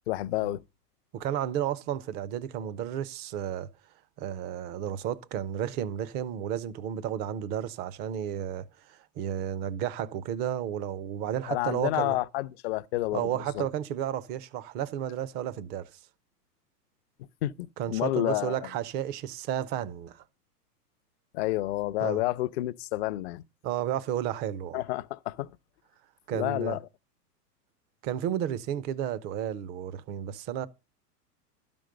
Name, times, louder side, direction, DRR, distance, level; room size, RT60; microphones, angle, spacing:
voice 1, 0.1-0.6 11.5-13.7 17.4-18.6 21.3-23.4 24.7-25.5 26.3-26.8, left 17 dB, 40° left, 0.6 m, -30 dB
voice 2, 1.1-3.7 4.2-12.2 13.1-16.0 17.8-20.2 22.0-22.2 23.6-24.8 26.3-26.8 28.0-30.7, right 10 dB, 20° right, 0.5 m, -32 dB
12.5 x 5.3 x 6.6 m
hypercardioid pair, 105°, 48 cm